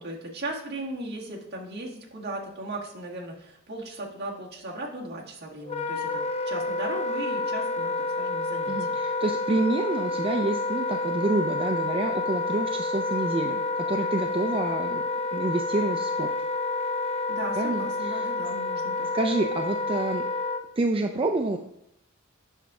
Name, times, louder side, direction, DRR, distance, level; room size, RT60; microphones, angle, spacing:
voice 1, 0.0-9.0 17.3-19.1, right 1 dB, 55° right, -2 dB, 1.6 m, -37 dB
Wind instrument woodwind instrument, 5.6-20.6, left 3 dB, 30° left, 0.5 m, -29 dB
voice 2, 8.7-13.6 13.9-15.0 15.3-16.3 17.5-18.3 19.1-20.2 20.8-21.6, right 2 dB, 25° right, 3 dB, 0.4 m, -28 dB
8.0 x 5.9 x 3.7 m, 0.75 s
head